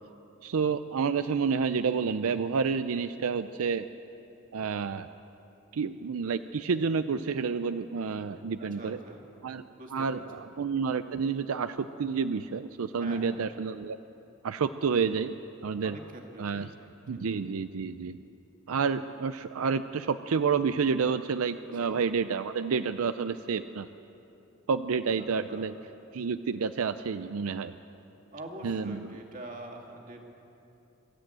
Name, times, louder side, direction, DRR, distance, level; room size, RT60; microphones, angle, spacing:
voice 1, 0.4-3.9 4.5-5.1 5.7-9.0 9.4-9.6 9.9-14.0 14.4-15.4 15.6-16.0 16.4-16.7 17.1-18.2 18.7-23.9 24.7-25.7 26.1-27.8 28.6-29.1, right 5 dB, 85° right, 11 dB, 0.5 m, -29 dB
voice 2, 8.6-9.2 9.8-10.2 13.0-13.4 15.8-17.2 21.7-22.0 25.5-25.7 28.3-30.2, right 1 dB, 40° right, 1 dB, 2.3 m, -44 dB
22.5 x 13.0 x 8.8 m, 3.0 s
head